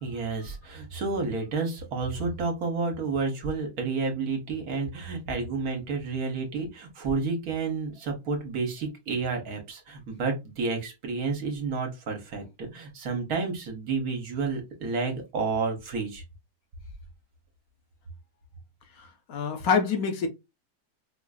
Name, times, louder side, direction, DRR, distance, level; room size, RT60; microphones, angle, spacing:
voice 1, 0.0-16.2, right 4 dB, 65° right, 1.4 m, -30 dB
voice 2, 18.9-20.3, left 6 dB, 70° left, 1.2 m, -26 dB
4.7 x 2.5 x 2.3 m
omnidirectional pair, 1.7 m